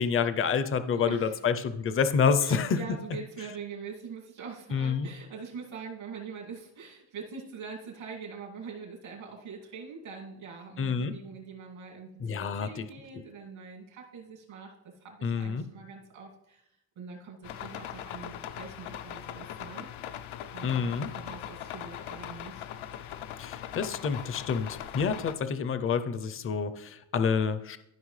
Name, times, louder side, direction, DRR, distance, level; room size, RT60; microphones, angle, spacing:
voice 1, 0.0-2.8 4.7-5.1 10.8-11.1 12.2-12.8 15.2-15.6 20.6-21.1 23.4-27.8, left 6 dB, 30° left, 12 dB, 0.5 m, -28 dB
voice 2, 0.9-1.4 2.4-16.7 17.0-19.9 20.5-22.7, right 5 dB, 90° right, -1 dB, 2.4 m, -44 dB
sound 1, 17.4-25.4, left 10 dB, 80° left, 0.7 m, -40 dB
13.5 x 5.7 x 3.2 m, 0.84 s
cardioid pair, 130°, 47 cm